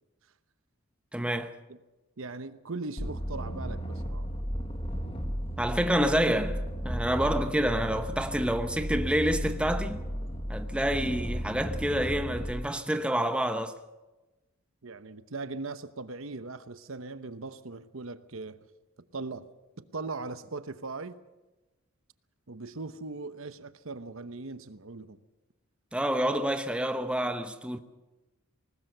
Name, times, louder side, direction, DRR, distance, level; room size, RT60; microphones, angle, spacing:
voice 1, 1.1-1.5 5.6-10.0 10.5-13.8 25.9-27.8, equal, 5° right, 0.9 m, -28 dB
voice 2, 2.2-4.3 14.8-18.6 19.1-19.5 19.8-21.2 22.5-25.2, right 3 dB, 70° right, 0.9 m, -39 dB
sound 1, 3.0-12.5, equal, 25° left, 1.8 m, -34 dB
20.0 x 19.5 x 6.7 m
head